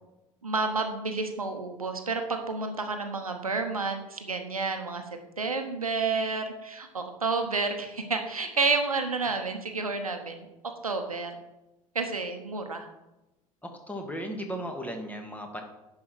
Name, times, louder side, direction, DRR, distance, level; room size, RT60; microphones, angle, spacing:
voice 1, 0.4-5.0 5.4-10.5 10.8-11.3 11.9-12.9, right 4 dB, 85° right, 6 dB, 1.0 m, -30 dB
voice 2, 13.6-15.6, equal, 10° left, 4 dB, 2.0 m, -36 dB
10.5 x 4.8 x 6.3 m, 0.95 s
figure-of-eight pair, 65°, 18 cm